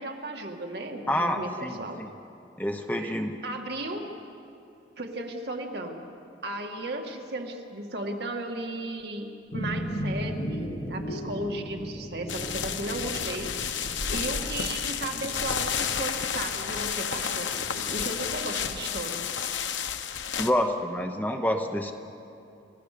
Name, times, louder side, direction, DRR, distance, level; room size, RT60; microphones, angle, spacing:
voice 1, 0.0-2.0 3.0-4.1 5.0-6.0 6.4-13.5 14.1-19.2, right 2 dB, 60° right, 2 dB, 2.1 m, -35 dB
voice 2, 1.1-2.1 2.6-3.3 20.4-21.9, equal, 10° left, 5 dB, 0.9 m, -28 dB
sound 1, 9.5-16.1, equal, 50° left, 1.3 m, -36 dB
sound 2, 12.3-20.5, left 7 dB, 85° left, 1.0 m, -31 dB
29.5 x 16.5 x 6.8 m, 2.7 s
head